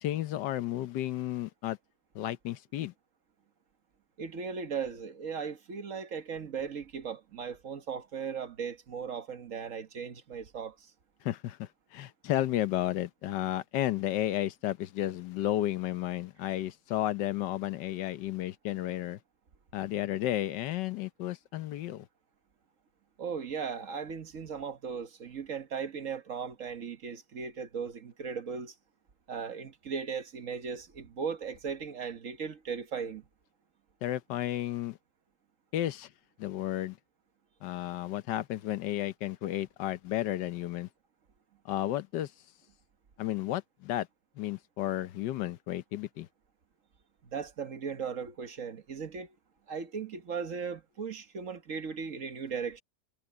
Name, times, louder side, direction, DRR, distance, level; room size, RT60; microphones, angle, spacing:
voice 1, 0.0-1.8 2.1-2.9 11.2-19.2 19.7-22.1 34.0-35.0 35.7-36.1 36.4-37.0 37.6-40.9 41.6-42.3 43.2-44.1 44.4-46.3, left 13 dB, 90° left, 1.4 m, -32 dB
voice 2, 4.2-10.9 23.2-28.7 29.3-33.2 47.2-49.3 49.7-52.8, right 6 dB, 50° right, 1.5 m, -37 dB
omnidirectional pair, 1.8 m